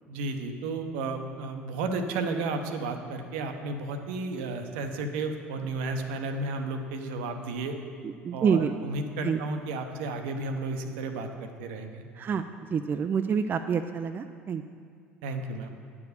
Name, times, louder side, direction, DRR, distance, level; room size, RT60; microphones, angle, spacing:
voice 1, 0.1-7.8 8.3-12.0 15.2-15.7, right 3 dB, 65° right, 6 dB, 0.7 m, -33 dB
voice 2, 8.2-8.7 9.2-9.4 12.2-12.4 12.7-14.6, right 6 dB, 30° right, 8 dB, 0.3 m, -27 dB
9.3 x 4.9 x 6.5 m, 2.2 s
hypercardioid pair, 65°, 6 cm